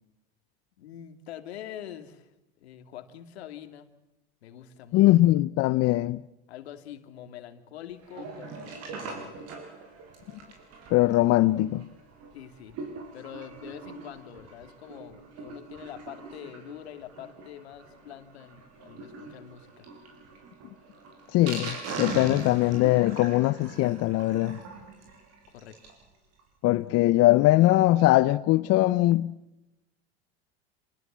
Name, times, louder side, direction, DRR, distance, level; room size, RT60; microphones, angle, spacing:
voice 1, 0.8-2.3 2.6-3.9 4.4-5.2 6.5-9.5 12.3-12.8 13.1-19.9 25.5-25.8, left 10 dB, 90° left, 2.7 m, -45 dB
voice 2, 4.9-6.2 10.9-11.9 21.3-24.6 26.6-29.3, left 17 dB, 50° left, 0.8 m, -21 dB
Sink (filling or washing), 8.0-26.0 26.4-26.5 26.7-26.8 27.1-27.2, right 4 dB, 55° right, 7.1 m, -42 dB
27.5 x 20.5 x 7.5 m
supercardioid pair, 100°, 31 cm